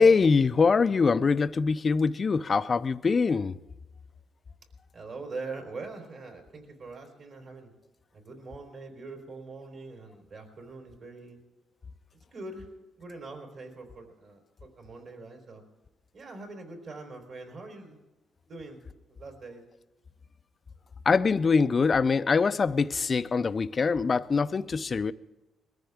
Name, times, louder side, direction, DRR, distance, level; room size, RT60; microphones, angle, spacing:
voice 1, 0.0-3.6 21.1-25.1, left 5 dB, 35° left, 0.6 m, -23 dB
voice 2, 4.9-7.7 8.1-11.4 12.3-12.7 13.0-15.6 16.1-18.0 18.5-18.8 19.1-19.6, right 3 dB, 50° right, 4.0 m, -43 dB
21.5 x 14.0 x 3.6 m
cardioid pair, 90°, 0 cm